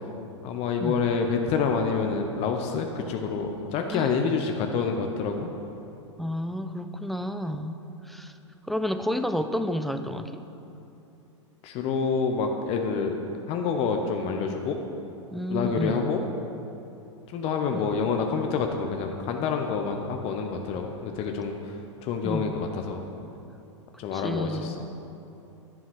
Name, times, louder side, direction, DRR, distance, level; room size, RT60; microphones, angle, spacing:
voice 1, 0.4-5.5 11.6-13.2 13.5-14.8 15.5-16.2 17.3-21.7 22.0-23.0 24.0-24.7, left 5 dB, 40° left, 4 dB, 1.0 m, -27 dB
voice 2, 6.2-8.3 8.7-10.4 15.3-16.1 17.7-17.9 22.2-22.5 24.1-24.7, equal, ahead, 8 dB, 0.6 m, -31 dB
11.5 x 7.4 x 6.2 m, 2.9 s
hypercardioid pair, 100°, 16 cm